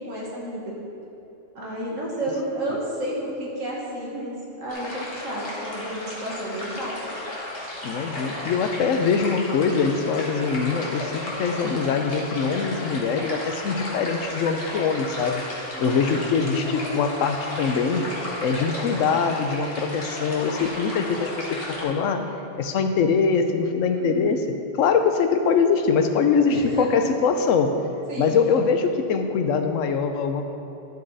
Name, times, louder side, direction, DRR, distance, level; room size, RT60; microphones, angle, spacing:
voice 1, 0.1-0.7 1.5-7.1 15.7-16.2 23.9-24.3 26.5-27.1 28.1-28.4, right 1 dB, 85° right, -4 dB, 2.2 m, -31 dB
sound 1, 4.7-21.8, left 1 dB, 50° left, 1.8 m, -34 dB
voice 2, 7.8-15.4 15.8-18.1 18.4-22.2 22.6-24.4 24.8-27.8 28.2-30.5, left 5 dB, 90° left, 7 dB, 1.1 m, -23 dB
11.5 x 6.6 x 4.0 m, 2.9 s
omnidirectional pair, 1.3 m